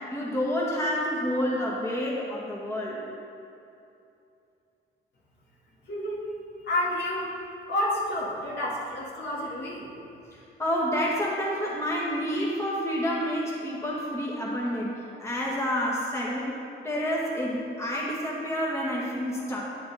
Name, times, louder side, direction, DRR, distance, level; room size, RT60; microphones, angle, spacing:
voice 1, 0.0-3.0 10.6-14.9 15.2-16.6 16.8-19.7, equal, 15° left, -5 dB, 1.8 m, -29 dB
voice 2, 5.9-6.2 6.7-7.4 7.7-9.9, left 1 dB, 60° left, -5 dB, 2.2 m, -29 dB
9.6 x 6.8 x 4.2 m, 2.7 s
cardioid pair, 90°, 20 cm